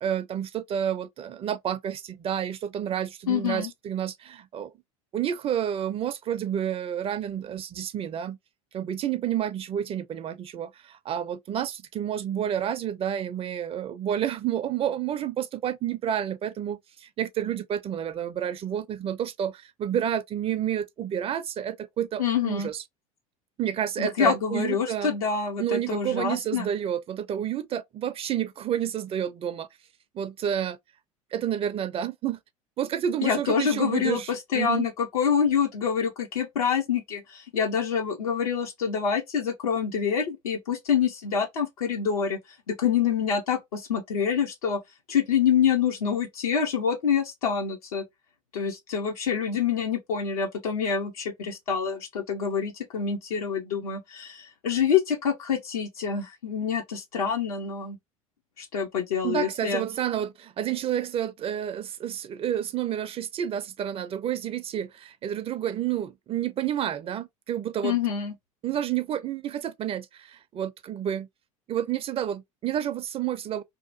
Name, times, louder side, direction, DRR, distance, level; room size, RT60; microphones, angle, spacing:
voice 1, 0.0-4.7 5.1-8.4 8.7-22.8 23.6-25.1 25.6-29.7 30.1-30.8 31.3-32.4 32.8-34.9 59.2-68.0 68.6-71.3 71.7-73.6, right 10 dB, 30° right, 0.4 m, -30 dB
voice 2, 3.3-3.7 22.2-22.7 24.0-26.7 33.2-42.4 42.7-44.8 45.1-48.0 48.5-58.0 58.6-59.8 67.8-68.3, left 7 dB, 80° left, 0.7 m, -26 dB
2.8 x 2.1 x 2.5 m
hypercardioid pair, 75°, 18 cm